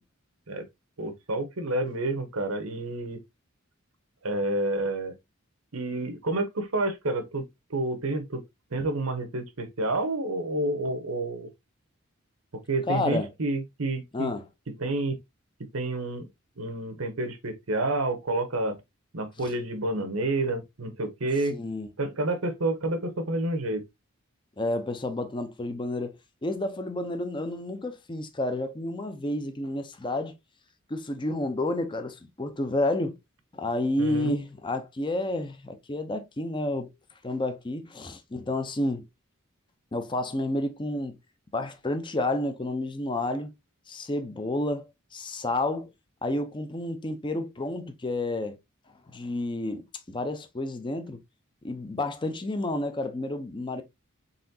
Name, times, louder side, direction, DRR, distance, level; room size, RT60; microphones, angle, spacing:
voice 1, 1.0-3.2 4.2-5.1 5.7-8.4 8.7-11.5 12.7-14.3 14.8-15.2 15.7-16.3 16.6-18.8 19.1-21.6 22.0-23.8 34.0-34.3, right 2 dB, 85° right, 1.0 m, -29 dB
voice 2, 12.9-13.3 14.1-14.4 19.4-19.5 21.5-21.9 24.6-26.2 26.4-30.3 30.9-33.2 33.5-36.9 37.2-39.0 39.9-41.2 41.5-43.5 43.9-45.9 46.2-48.6 49.1-51.2 51.6-53.8, left 2 dB, 25° left, 0.6 m, -30 dB
4.1 x 3.7 x 2.7 m
head